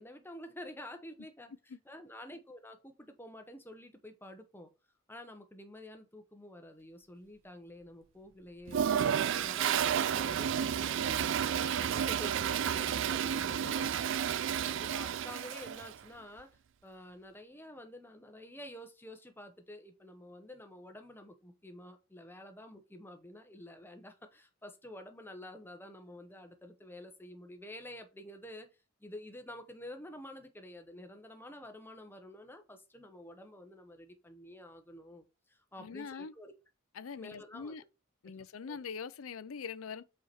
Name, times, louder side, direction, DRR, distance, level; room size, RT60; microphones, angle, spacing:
voice 1, 0.0-4.7 5.1-8.8 9.2-14.0 14.6-16.5 16.8-28.7 29.0-36.5 37.2-37.8 38.7-38.8, left 1 dB, 10° left, 1.0 m, -49 dB
Toilet flush, 8.7-15.9, right 9 dB, 60° right, 0.4 m, -31 dB
voice 2, 13.5-13.8 35.8-36.3 36.9-37.8 38.2-40.0, left 5 dB, 85° left, 0.5 m, -43 dB
5.6 x 4.6 x 4.3 m
head